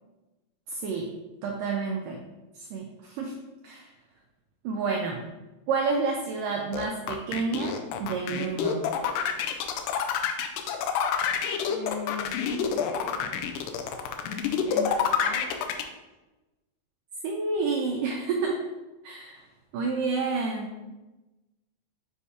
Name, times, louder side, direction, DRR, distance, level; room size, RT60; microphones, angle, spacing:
voice 1, 0.7-1.1 1.4-2.2 2.6-3.3 3.6-3.9 4.6-5.2 5.7-8.8 17.2-18.6 19.0-19.4 19.7-20.8, right 4 dB, 85° right, 0 dB, 1.9 m, -29 dB
sound 1, 6.7-15.8, left 8 dB, 85° left, 1.9 m, -27 dB
voice 2, 11.5-13.4 14.2-15.6, left 6 dB, 70° left, -1 dB, 2.4 m, -39 dB
7.4 x 4.6 x 2.8 m, 1.1 s
omnidirectional pair, 4.5 m